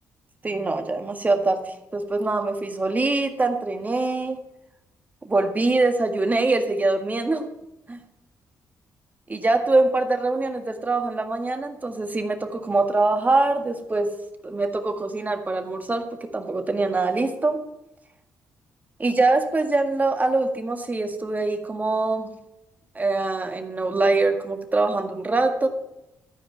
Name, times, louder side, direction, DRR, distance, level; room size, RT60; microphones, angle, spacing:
voice 1, 0.4-4.4 5.2-7.5 7.9-8.0 9.3-14.1 14.4-16.1 16.3-17.6 19.0-22.3 23.0-25.7, right 3 dB, 25° right, 6 dB, 1.8 m, -23 dB
13.5 x 5.1 x 9.2 m, 0.91 s
cardioid pair, 70°, 6 cm